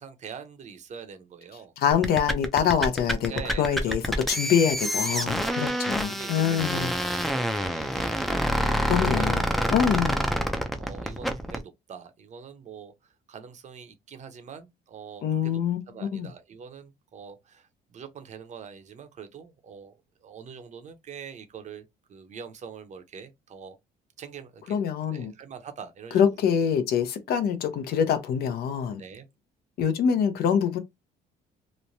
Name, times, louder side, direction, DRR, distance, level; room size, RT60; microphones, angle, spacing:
voice 1, 0.0-1.7 3.3-4.0 5.4-6.9 7.2-10.3 10.5-15.6 15.9-19.9 20.2-23.8 24.2-24.8 25.1-26.4 29.0-29.3, right 7 dB, 45° right, 0.7 m, -44 dB
voice 2, 1.8-3.3 3.6-6.9 8.9-9.4 9.7-10.2 15.2-15.8 16.1-16.3 24.7-25.3 26.1-29.0 29.8-30.8, left 8 dB, 65° left, 0.6 m, -25 dB
sound 1, 1.9-11.6, equal, ahead, 0.5 m, -27 dB
3.0 x 2.1 x 2.6 m
cardioid pair, 110°, 17 cm